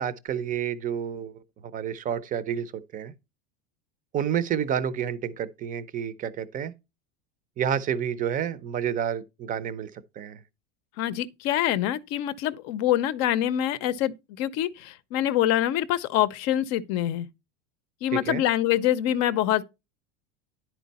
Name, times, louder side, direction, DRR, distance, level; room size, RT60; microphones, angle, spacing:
voice 1, 0.0-1.4 1.7-3.1 4.1-6.7 7.6-9.9 10.2-10.4 18.1-18.4, right 9 dB, 25° right, 0.6 m, -29 dB
voice 2, 11.0-17.3 18.0-19.6, left 12 dB, 50° left, 0.6 m, -25 dB
10.0 x 4.5 x 4.0 m
supercardioid pair, 140°, 34 cm